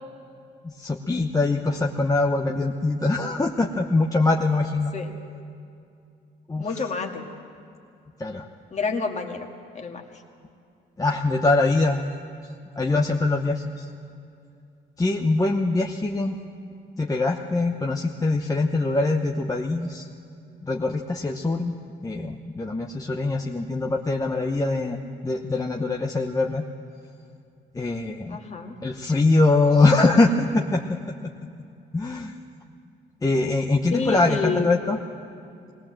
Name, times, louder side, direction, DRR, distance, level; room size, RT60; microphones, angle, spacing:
voice 1, 0.8-4.9 6.5-6.8 8.2-8.5 11.0-12.0 12.8-13.8 15.0-16.4 17.0-20.1 20.6-21.7 22.0-26.6 27.7-28.4 28.8-30.8 31.9-32.3 33.2-35.0, left 2 dB, 15° left, 1 dB, 0.9 m, -23 dB
voice 2, 6.6-7.3 8.7-9.5 9.7-10.0 28.3-28.7 33.9-34.7, left 4 dB, 35° left, 3 dB, 1.9 m, -28 dB
20.0 x 17.5 x 7.6 m, 2.5 s
cardioid pair, 90°, 20 cm